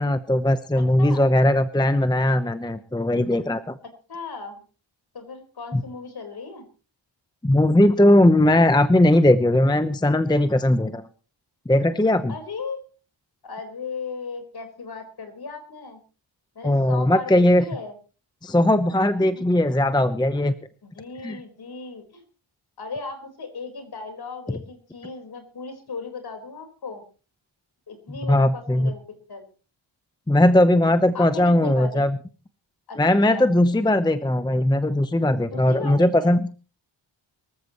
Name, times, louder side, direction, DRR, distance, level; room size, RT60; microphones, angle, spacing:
voice 1, 0.0-3.7 5.7-5.8 7.4-11.0 11.7-12.3 16.6-17.6 18.4-20.5 21.2-21.4 28.2-28.9 30.3-32.2 33.0-36.5, left 1 dB, 10° left, 10 dB, 0.8 m, -19 dB
voice 2, 4.1-4.6 5.1-6.6 12.3-12.8 13.4-16.0 16.5-17.9 18.9-19.4 20.8-22.2 22.8-27.0 27.9-29.0 29.3-29.5 31.1-32.0 32.9-33.0 33.3-33.5 35.5-36.3, left 4 dB, 50° left, 6 dB, 4.5 m, -36 dB
24.5 x 14.5 x 3.0 m, 0.37 s
wide cardioid pair, 160°, 48 cm